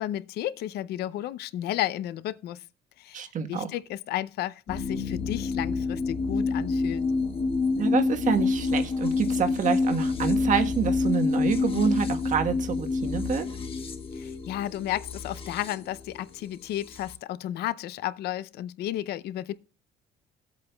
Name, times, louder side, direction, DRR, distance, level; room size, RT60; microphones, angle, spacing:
voice 1, 0.0-2.6 3.0-7.1 14.1-19.5, left 13 dB, 75° left, 0.6 m, -33 dB
voice 2, 3.1-3.7 7.8-13.5, right 7 dB, 50° right, 1.3 m, -27 dB
sound 1, 4.7-17.1, left 4 dB, 35° left, 1.4 m, -28 dB
18.5 x 8.3 x 2.3 m
cardioid pair, 110°, 17 cm